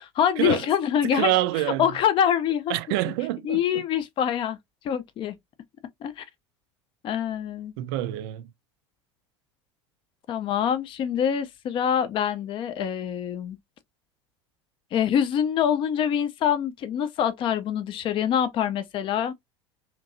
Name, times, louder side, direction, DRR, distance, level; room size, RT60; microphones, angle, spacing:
voice 1, 0.0-1.3 1.8-2.7 3.4-4.6 4.8-5.3 6.0-6.2 7.0-7.7 10.3-13.6 14.9-19.3, left 9 dB, 35° left, 0.5 m, -25 dB
voice 2, 1.0-1.9 2.7-3.6 7.8-8.5, right 15 dB, 55° right, 0.4 m, -26 dB
2.9 x 2.7 x 2.5 m
figure-of-eight pair, 75°, 15 cm